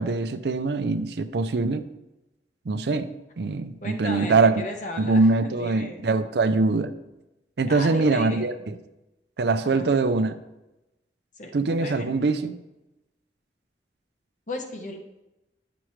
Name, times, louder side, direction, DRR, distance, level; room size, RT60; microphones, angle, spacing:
voice 1, 0.0-1.8 2.7-3.1 3.4-4.5 5.0-6.9 7.6-8.8 9.4-10.3 11.5-12.6, right 3 dB, 65° right, 11 dB, 0.5 m, -23 dB
voice 2, 3.8-6.0 7.7-8.4 9.6-10.0 11.4-12.1 14.5-15.0, left 2 dB, 45° left, 3 dB, 0.9 m, -36 dB
10.0 x 6.0 x 3.1 m, 0.96 s
head